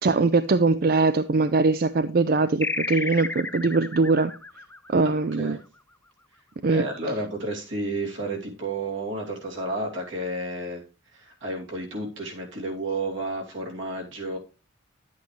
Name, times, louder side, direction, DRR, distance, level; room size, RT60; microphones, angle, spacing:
voice 1, 0.0-4.3 4.9-5.6 6.6-6.9, right 3 dB, 50° right, 0.4 m, -22 dB
sound 1, 2.6-5.6, left 3 dB, 10° left, 0.5 m, -32 dB
voice 2, 5.0-5.6 6.7-10.8 11.1-14.4, right 2 dB, 75° right, 2.8 m, -31 dB
11.0 x 8.4 x 3.2 m
head